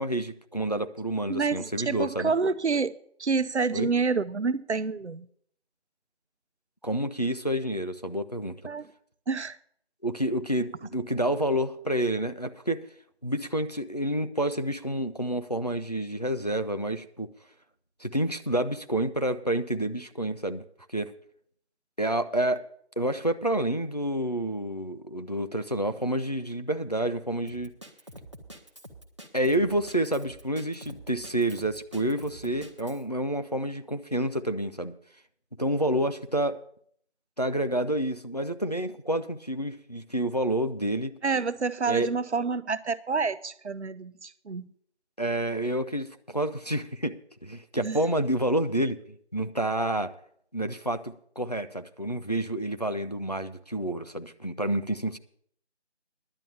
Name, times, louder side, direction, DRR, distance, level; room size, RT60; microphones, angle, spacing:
voice 1, 0.0-2.3 3.7-3.9 6.8-8.6 10.0-12.9 13.2-17.3 18.0-20.6 20.9-21.1 22.0-22.7 23.0-27.8 29.3-34.9 35.6-36.6 37.4-41.2 41.9-42.1 45.2-50.1 50.5-55.2, right 1 dB, 40° left, 0.5 m, -29 dB
voice 2, 1.3-2.9 3.2-5.3 8.6-8.9 9.3-9.6 41.2-44.7 47.8-48.0, right 4 dB, 80° right, 0.7 m, -28 dB
Drum kit, 27.5-33.0, right 1 dB, 25° right, 0.9 m, -46 dB
11.0 x 8.2 x 6.9 m
figure-of-eight pair, 170°, 33 cm